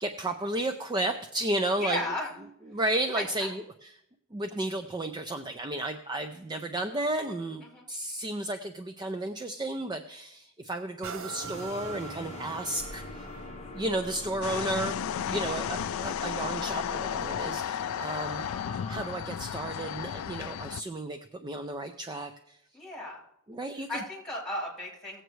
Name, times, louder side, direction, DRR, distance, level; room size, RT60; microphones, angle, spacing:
voice 1, 0.0-2.0 2.7-3.9 4.3-13.2 13.7-18.5 18.9-22.6 23.5-23.9, right 1 dB, 20° right, 7 dB, 0.4 m, -33 dB
voice 2, 1.8-2.3 3.1-3.3 7.6-7.9 15.3-15.6 22.7-23.2 23.9-25.2, left 1 dB, 5° left, -3 dB, 3.7 m, -35 dB
sound 1, 11.0-18.6 19.2-19.3, right 7 dB, 65° right, 0.7 m, -47 dB
sound 2, 11.4-19.2, left 2 dB, 30° left, 0.8 m, -44 dB
sound 3, 14.4-20.8, left 8 dB, 70° left, 0.3 m, -33 dB
18.0 x 7.9 x 3.1 m, 0.81 s
head